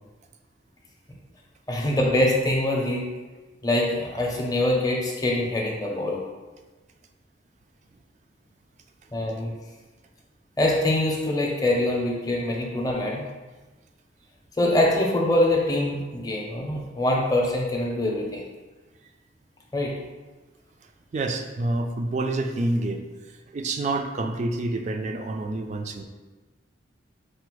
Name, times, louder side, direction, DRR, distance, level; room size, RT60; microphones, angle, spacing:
voice 1, 1.7-3.1 3.6-6.2 9.1-9.5 10.6-13.2 14.6-18.4 19.7-19.9, left 1 dB, 20° left, -2 dB, 0.6 m, -24 dB
voice 2, 21.1-23.0 23.5-26.0, right 2 dB, 40° right, 5 dB, 0.3 m, -27 dB
4.9 x 2.0 x 4.5 m, 1.3 s
head